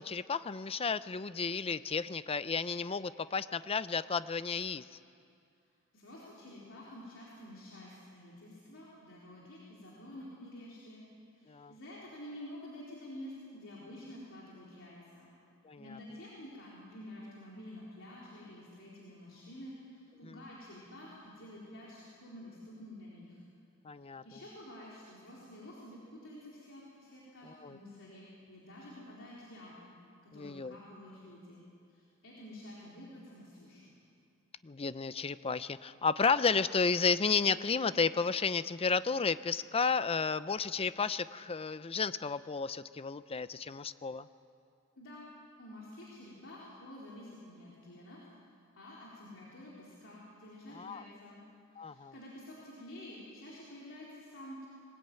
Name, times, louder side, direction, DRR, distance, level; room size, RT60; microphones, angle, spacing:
voice 1, 0.0-4.8 11.5-11.7 15.6-15.8 20.2-20.4 23.8-24.2 27.4-27.8 30.3-30.8 34.6-44.3 50.7-51.0 51.8-52.1, left 5 dB, 25° left, 14 dB, 0.6 m, -32 dB
voice 2, 5.9-11.1 11.4-15.3 15.8-23.4 24.0-29.9 30.2-31.6 31.9-33.9 45.0-45.3 45.6-48.3 48.7-51.4 51.7-54.7, left 1 dB, 65° left, -6 dB, 4.1 m, -49 dB
22.0 x 19.5 x 9.1 m, 2.4 s
head